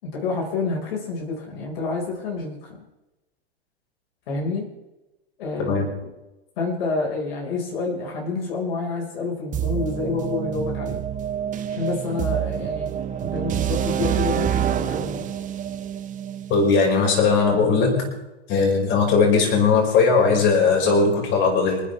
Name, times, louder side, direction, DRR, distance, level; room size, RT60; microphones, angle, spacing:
voice 1, 0.0-2.8 4.3-4.7 5.4-6.1 6.6-11.0 11.7-15.3, left 3 dB, 65° left, 0 dB, 5.2 m, -28 dB
sound 1, 9.5-17.4, right 9 dB, 25° right, 1.4 m, -27 dB
voice 2, 16.5-18.2 18.5-21.8, left 4 dB, 35° left, 0 dB, 5.5 m, -19 dB
28.5 x 10.0 x 3.5 m, 1.0 s
hypercardioid pair, 120°, 32 cm